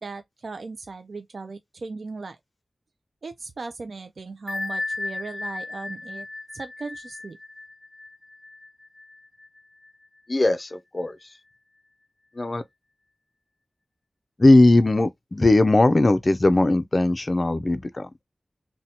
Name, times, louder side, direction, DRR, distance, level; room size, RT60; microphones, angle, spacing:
voice 1, 0.0-2.4 3.2-6.3 6.5-7.4, right 3 dB, 75° right, 0.4 m, -37 dB
Bell, 4.5-9.9, left 2 dB, ahead, 1.1 m, -35 dB
voice 2, 10.3-11.2 12.4-12.6 14.4-18.1, left 2 dB, 40° left, 0.4 m, -19 dB
2.8 x 2.2 x 4.0 m
wide cardioid pair, 55°, 0 cm